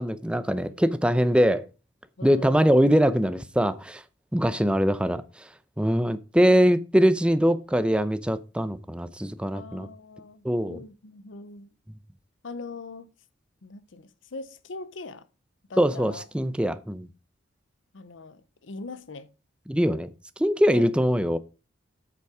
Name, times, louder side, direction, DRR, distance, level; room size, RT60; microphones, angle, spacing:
voice 1, 0.0-1.7 2.2-4.0 4.3-5.2 5.8-9.9 10.4-10.8 15.8-17.1 19.7-20.1 20.4-21.4, equal, 5° right, 0.5 m, -22 dB
voice 2, 2.2-2.7 9.5-11.7 12.4-13.1 13.6-15.3 15.7-16.3 17.9-19.3 20.7-20.9, left 3 dB, 70° left, 0.7 m, -41 dB
8.2 x 7.0 x 4.8 m
head